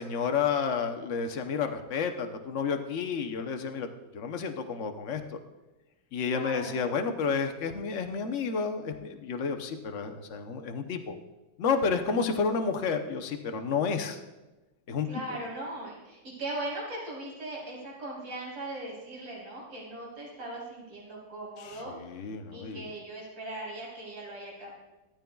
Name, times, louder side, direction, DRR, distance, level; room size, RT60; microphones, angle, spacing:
voice 1, 0.0-3.9 4.1-5.2 6.1-11.2 11.6-14.2 14.9-15.1 22.0-22.8, left 5 dB, 60° left, 5 dB, 0.8 m, -30 dB
voice 2, 6.2-6.8 15.1-24.7, right 1 dB, 85° right, -5 dB, 4.5 m, -39 dB
16.5 x 12.5 x 2.3 m, 1.1 s
omnidirectional pair, 2.3 m